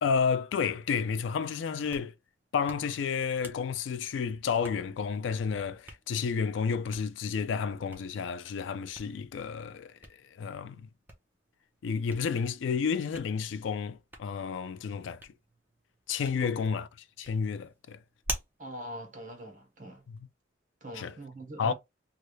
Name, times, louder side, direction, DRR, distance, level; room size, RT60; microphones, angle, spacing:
voice 1, 0.0-2.1 2.5-10.0 10.4-10.9 11.8-15.2 16.1-16.9 17.2-18.0 20.1-20.3 20.9-21.1 21.6-21.7, left 6 dB, 75° left, 0.3 m, -31 dB
Hands, 1.7-20.2, right 1 dB, 10° right, 0.7 m, -48 dB
voice 2, 18.6-20.0 20.8-21.7, right 1 dB, 45° right, 1.0 m, -42 dB
3.2 x 2.4 x 3.1 m
head